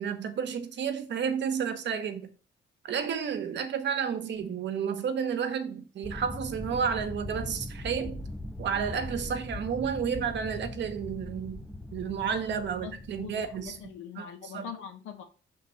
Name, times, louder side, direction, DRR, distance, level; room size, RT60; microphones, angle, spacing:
voice 1, 0.0-2.3 2.8-8.3 8.6-14.7, right 7 dB, 65° right, 1.1 m, -31 dB
sound 1, 6.0-13.9, left 1 dB, ahead, 0.5 m, -40 dB
voice 2, 12.2-15.2, left 8 dB, 85° left, 1.4 m, -43 dB
5.9 x 3.6 x 5.7 m
cardioid pair, 90°, 20 cm